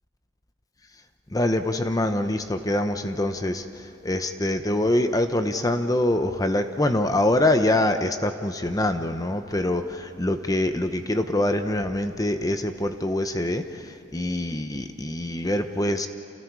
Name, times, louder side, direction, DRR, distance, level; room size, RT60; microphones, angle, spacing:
voice 1, 1.3-16.1, left 1 dB, 20° left, 7 dB, 0.9 m, -24 dB
29.5 x 28.0 x 4.8 m, 2.7 s
head